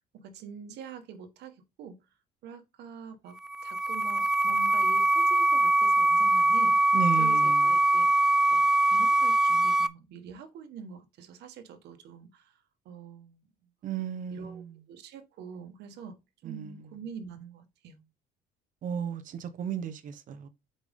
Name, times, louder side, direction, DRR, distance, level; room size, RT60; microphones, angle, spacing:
voice 1, 0.1-2.0 2.4-12.6 12.8-13.4 14.3-16.2 16.4-18.0, right 6 dB, 75° right, 1.5 m, -45 dB
sound 1, 3.4-9.9, right 1 dB, 5° right, 0.3 m, -23 dB
voice 2, 6.9-7.6 13.8-14.7 16.4-16.9 18.8-20.5, right 8 dB, 50° right, 0.9 m, -34 dB
8.0 x 5.1 x 3.6 m
cardioid pair, 145°, 17 cm